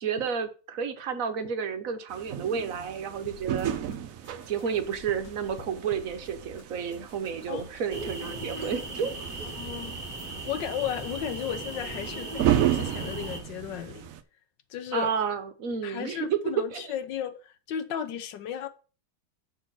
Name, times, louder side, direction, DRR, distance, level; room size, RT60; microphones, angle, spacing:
voice 1, 0.0-3.7 4.5-9.1 14.9-16.3 16.6-16.9, right 6 dB, 60° right, 0.9 m, -31 dB
sound 1, 2.1-14.2, right 11 dB, 90° right, 0.7 m, -34 dB
sound 2, 3.3-4.0 4.2-6.6 6.9-8.6, left 4 dB, 90° left, 1.8 m, -49 dB
sound 3, 7.9-13.4, right 2 dB, 35° right, 0.8 m, -37 dB
voice 2, 9.6-9.9 10.2-14.1 14.7-15.1 15.8-18.7, left 9 dB, 70° left, 1.3 m, -34 dB
7.0 x 4.4 x 5.9 m
omnidirectional pair, 2.2 m